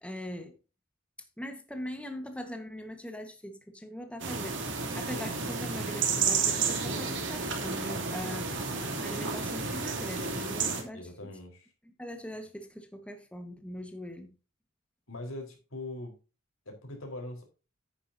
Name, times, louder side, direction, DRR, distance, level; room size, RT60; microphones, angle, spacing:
voice 1, 0.0-0.6 1.4-4.6 4.9-8.5 9.0-11.4 11.8-14.3, equal, 5° left, 1.4 m, -41 dB
sound 1, 4.2-10.8, right 5 dB, 60° right, 3.0 m, -31 dB
voice 2, 10.9-11.7 15.1-16.1 16.7-17.4, left 2 dB, 90° left, 4.2 m, -41 dB
10.0 x 9.6 x 2.7 m
head